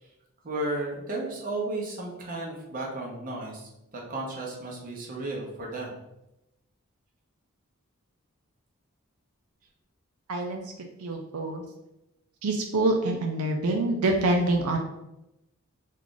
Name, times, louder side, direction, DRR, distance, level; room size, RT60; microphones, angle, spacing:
voice 1, 0.4-3.7 4.1-6.0, right 2 dB, 40° right, -1 dB, 0.8 m, -33 dB
voice 2, 10.3-10.6 11.0-11.6 12.4-14.8, right 2 dB, 85° right, 2 dB, 0.4 m, -26 dB
3.1 x 2.4 x 3.7 m, 0.90 s
head